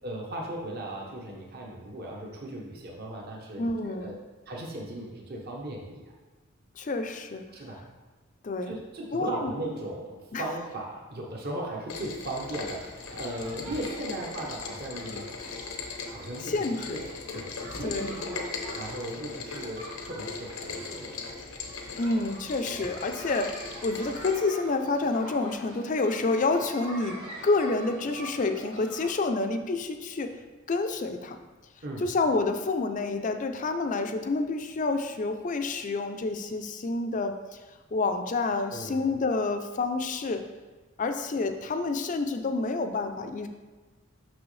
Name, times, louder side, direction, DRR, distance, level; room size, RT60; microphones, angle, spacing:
voice 1, 0.0-4.1 4.5-6.0 7.5-7.8 8.7-15.3 16.1-17.1 17.3-21.1 31.8-32.1 38.7-39.1, right 1 dB, 50° right, -1 dB, 0.9 m, -37 dB
voice 2, 3.6-4.2 6.8-7.4 8.4-8.7 9.1-9.5 10.3-10.5 16.4-17.0 17.3-17.4 17.8-18.1 22.0-30.3 30.7-31.4 32.0-37.4 37.9-40.5 41.0-43.5, left 3 dB, 35° left, 7 dB, 0.4 m, -28 dB
Rain, 11.9-24.3, left 4 dB, 85° left, 0.9 m, -39 dB
sound 1, 12.2-29.1, right 1 dB, 90° right, 1.6 m, -45 dB
6.1 x 6.0 x 3.2 m, 1.3 s
head